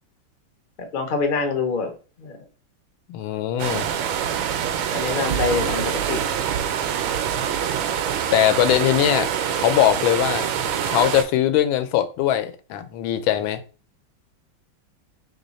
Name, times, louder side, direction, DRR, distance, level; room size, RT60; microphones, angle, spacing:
voice 1, 0.8-1.9 2.2-2.4 4.9-6.2, left 4 dB, 60° left, 0.5 m, -25 dB
voice 2, 3.1-3.9 8.3-10.5 10.8-13.6, left 11 dB, 90° left, 1.4 m, -21 dB
sound 1, 3.6-11.2, right 8 dB, 80° right, 1.4 m, -25 dB
3.5 x 3.1 x 4.0 m
omnidirectional pair, 2.1 m